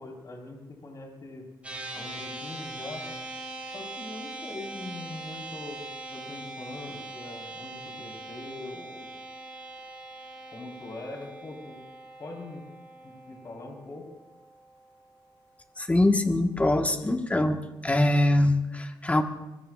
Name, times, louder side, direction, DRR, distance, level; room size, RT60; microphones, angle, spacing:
voice 1, 0.0-1.5 1.9-3.0 3.7-5.8 6.1-9.1 10.5-11.8 12.2-12.6 13.0-14.1, left 2 dB, 45° left, 0 dB, 4.2 m, -42 dB
sound 1, 1.6-15.2, right 2 dB, 15° right, 5.9 m, -42 dB
voice 2, 15.8-17.6 17.8-19.2, left 1 dB, 15° left, 4 dB, 1.4 m, -23 dB
24.0 x 22.0 x 2.5 m, 1.0 s
cardioid pair, 110°, 8 cm